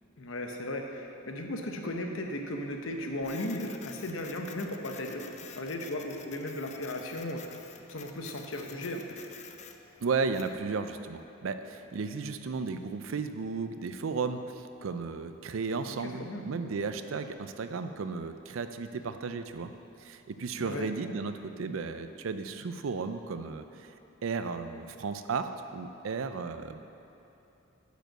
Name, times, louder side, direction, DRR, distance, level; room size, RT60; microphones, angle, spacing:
voice 1, 0.2-7.6 7.9-9.2 15.9-16.4 20.6-20.9, left 1 dB, 75° left, 3 dB, 0.9 m, -36 dB
Printer, 3.2-10.6, left 7 dB, 35° left, 0.4 m, -50 dB
voice 2, 10.0-19.7 20.0-23.9 24.2-26.8, right 4 dB, 75° right, 9 dB, 0.5 m, -34 dB
9.0 x 5.1 x 6.4 m, 2.9 s
head